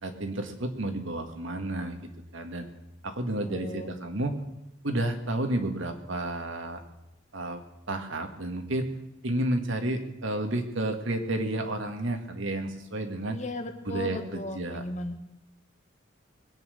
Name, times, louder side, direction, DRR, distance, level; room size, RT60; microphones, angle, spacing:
voice 1, 0.0-2.7 3.0-4.3 4.8-6.8 7.3-7.6 7.9-8.9 9.2-13.4 13.9-14.8, right 1 dB, 70° right, 5 dB, 1.9 m, -31 dB
voice 2, 3.4-4.0 13.3-15.2, left 1 dB, 35° left, 6 dB, 1.5 m, -36 dB
21.0 x 9.0 x 6.5 m, 0.88 s
head